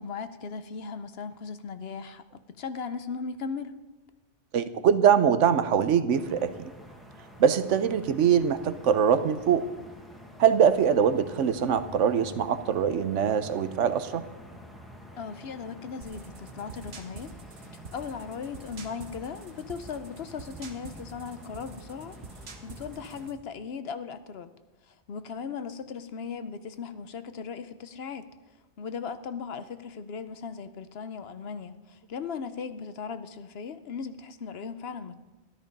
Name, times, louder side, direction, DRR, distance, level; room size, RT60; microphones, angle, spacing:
voice 1, 0.0-3.7 15.1-17.3 17.7-24.5 24.9-28.3 28.8-35.1, left 5 dB, 60° left, 12 dB, 0.9 m, -38 dB
voice 2, 4.5-6.7 7.4-9.7 10.4-14.2, right 8 dB, 80° right, 12 dB, 1.1 m, -23 dB
sound 1, 6.1-23.3, equal, ahead, 1.4 m, -48 dB
sound 2, 16.0-23.4, right 4 dB, 60° right, 1.5 m, -47 dB
13.5 x 13.0 x 5.3 m, 1.1 s
omnidirectional pair, 1.2 m